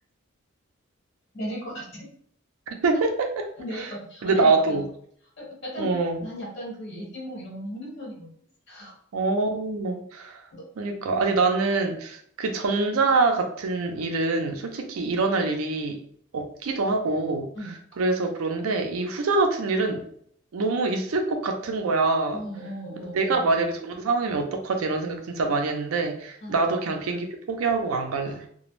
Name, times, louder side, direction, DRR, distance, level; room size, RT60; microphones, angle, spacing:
voice 1, 1.3-2.1 3.6-4.8 5.4-5.9 6.2-8.3 8.7-8.9 10.5-10.7 17.5-17.7 22.3-23.6 26.4-26.6 28.2-28.4, equal, 55° left, -4 dB, 1.1 m, -36 dB
voice 2, 2.7-3.5 3.8-3.9 4.2-4.8 5.8-6.2 9.1-10.4 10.8-16.0 16.3-20.1 20.5-22.4 23.0-28.4, right 3 dB, 80° right, 4 dB, 0.4 m, -25 dB
2.2 x 2.0 x 3.0 m, 0.62 s
head